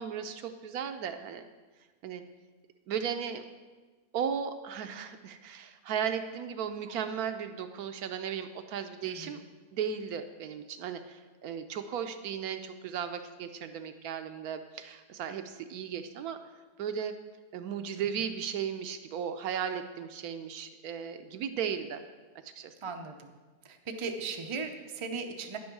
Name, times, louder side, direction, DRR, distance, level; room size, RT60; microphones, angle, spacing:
voice 1, 0.0-1.4 2.0-2.2 2.9-3.4 4.1-9.4 9.7-16.4 16.8-17.2 17.5-22.0 22.4-22.7, right 8 dB, 75° right, 8 dB, 1.1 m, -36 dB
voice 2, 9.0-9.4 18.0-18.1 22.8-23.3 23.6-25.6, right 4 dB, 50° right, 5 dB, 0.3 m, -38 dB
9.8 x 6.2 x 6.0 m, 1.3 s
omnidirectional pair, 1.7 m